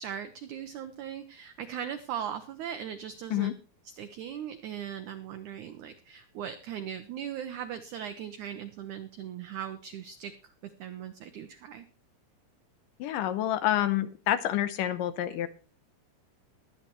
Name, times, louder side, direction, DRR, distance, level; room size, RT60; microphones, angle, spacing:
voice 1, 0.0-3.5 3.8-11.8, right 9 dB, 85° right, 9 dB, 1.7 m, -39 dB
voice 2, 13.0-15.5, left 12 dB, 80° left, 12 dB, 2.0 m, -28 dB
21.0 x 8.7 x 3.1 m, 0.37 s
omnidirectional pair, 4.5 m